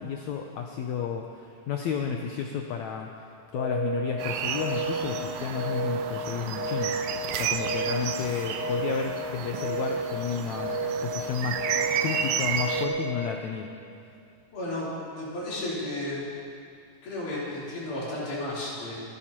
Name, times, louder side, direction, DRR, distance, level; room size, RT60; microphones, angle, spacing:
voice 1, 0.0-3.1 3.5-11.6 12.0-13.7, left 7 dB, 90° left, 2 dB, 1.6 m, -32 dB
sound 1, 3.5-4.0 4.5-5.0 5.5-6.0 6.5-7.0 7.5-8.0 8.5-9.0 9.5-10.0 10.5-11.0 11.5-12.0 12.5-13.0, right 2 dB, 65° right, 2.8 m, -31 dB
sound 2, 4.2-12.9, right 8 dB, 80° right, 2.3 m, -32 dB
voice 2, 14.5-16.3 17.0-19.0, left 1 dB, 60° left, -8 dB, 4.9 m, -33 dB
25.5 x 11.0 x 2.9 m, 2.4 s
omnidirectional pair, 4.0 m